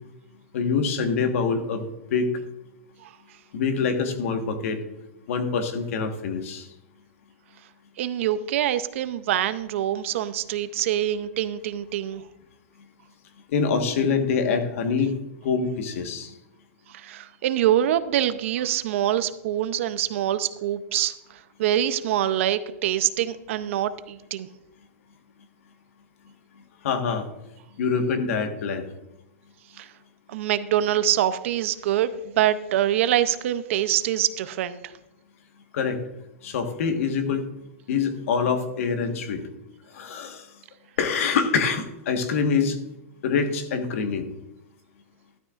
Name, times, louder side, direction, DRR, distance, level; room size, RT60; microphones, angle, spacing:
voice 1, 0.5-2.3 3.5-4.8 5.3-6.7 13.5-15.2 15.4-16.3 26.8-27.3 27.8-28.8 35.7-36.0 36.4-37.5 37.9-39.4 39.9-40.5 41.0-42.8 43.2-44.2, left 5 dB, 65° left, 6 dB, 1.5 m, -25 dB
voice 2, 8.0-12.2 16.9-24.5 29.8-29.9 30.3-34.9, right 11 dB, 60° right, 13 dB, 0.6 m, -25 dB
12.5 x 12.0 x 2.5 m, 0.92 s
supercardioid pair, 160°, 8 cm